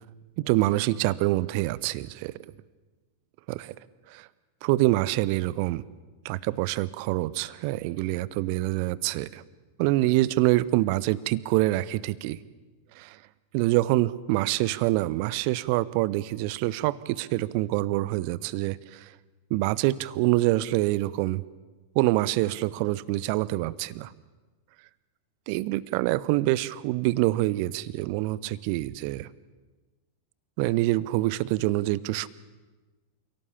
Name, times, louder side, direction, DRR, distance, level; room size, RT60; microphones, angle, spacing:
voice 1, 0.4-2.3 3.5-3.7 4.1-4.3 4.6-5.8 6.2-9.4 9.8-12.4 13.0-13.2 13.5-19.0 19.5-21.4 21.9-24.1 25.5-29.3 30.6-32.3, right 18 dB, 45° right, 21 dB, 0.8 m, -26 dB
29.0 x 17.5 x 8.5 m, 1.3 s
figure-of-eight pair, 90°, 0 cm